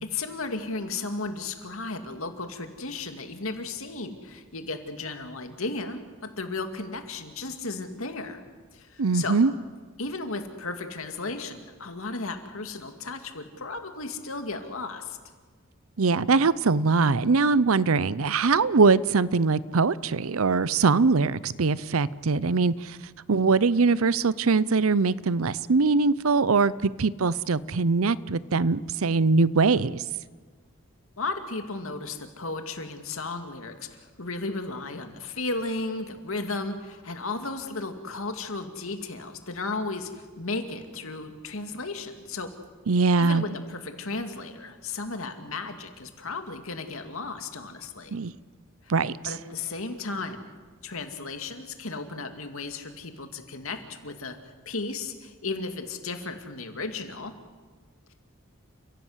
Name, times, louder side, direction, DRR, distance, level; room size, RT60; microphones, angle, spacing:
voice 1, 0.0-8.4 8.7-9.4 10.0-15.2 31.2-42.5 43.2-48.2 48.8-48.9 49.2-50.5 50.8-54.4 54.7-57.3, left 3 dB, 80° left, 2.5 m, -34 dB
voice 2, 9.0-9.5 16.0-23.0 23.3-30.0 42.9-43.4 48.1-48.3 48.9-49.1, right 4 dB, 80° right, 0.7 m, -22 dB
30.0 x 16.5 x 8.1 m
head